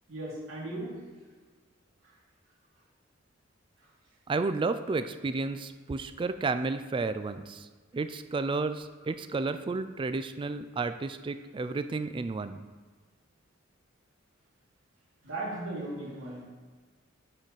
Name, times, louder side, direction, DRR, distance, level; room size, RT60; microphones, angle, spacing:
voice 1, 0.1-1.1 2.0-2.1 3.8-3.9 15.2-16.4, right 2 dB, 75° right, -5 dB, 2.6 m, -37 dB
voice 2, 4.3-7.7 7.9-12.6, right 3 dB, 25° right, 11 dB, 0.3 m, -32 dB
8.8 x 6.3 x 4.0 m, 1.4 s
head